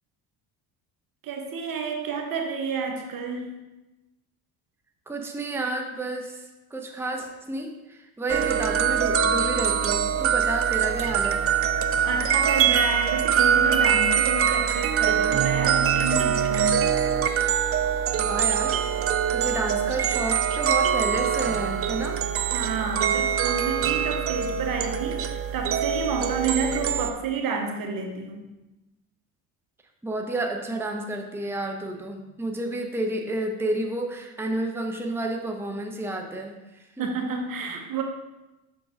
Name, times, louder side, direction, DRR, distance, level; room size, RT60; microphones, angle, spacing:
voice 1, 1.2-3.5 12.0-17.0 22.5-28.5 37.0-38.0, right 4 dB, 50° right, 4 dB, 1.1 m, -30 dB
voice 2, 5.1-11.4 18.2-18.8 19.1-22.2 30.0-37.1, right 2 dB, 5° right, 2 dB, 0.9 m, -31 dB
sound 1, 8.3-27.1, right 8 dB, 35° right, 0.4 m, -23 dB
6.2 x 3.8 x 5.0 m, 1.0 s
supercardioid pair, 80°, 42 cm